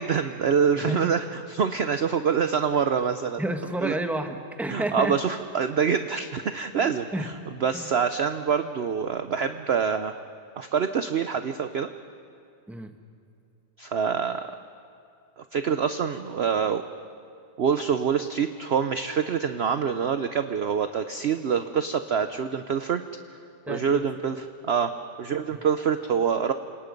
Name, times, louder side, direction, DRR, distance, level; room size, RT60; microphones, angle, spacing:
voice 1, 0.0-3.4 3.8-4.0 4.7-7.3 7.6-10.1 10.6-11.9 13.8-14.5 15.5-16.8 17.6-23.0 23.7-24.4 24.6-26.5, right 7 dB, 55° right, 9 dB, 0.7 m, -25 dB
voice 2, 0.8-1.1 3.4-5.2 6.8-7.3 7.7-7.9 12.7-12.9 23.7-24.1 25.5-25.6, right 1 dB, ahead, 5 dB, 1.2 m, -31 dB
28.5 x 26.5 x 5.3 m, 2.4 s
omnidirectional pair, 1.8 m